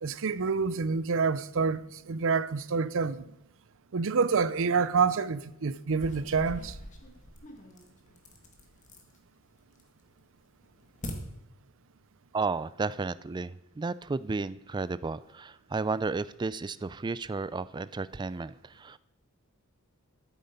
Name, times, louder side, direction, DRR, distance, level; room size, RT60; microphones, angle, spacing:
voice 1, 0.0-1.8 2.1-3.2 3.9-6.7, right 5 dB, 65° right, 0.6 m, -27 dB
sound 1, 5.9-9.2 9.6-10.1 10.4-11.1, left 1 dB, 35° left, 2.0 m, -44 dB
voice 2, 12.3-19.0, right 4 dB, 20° right, 0.3 m, -33 dB
12.0 x 9.4 x 5.2 m
head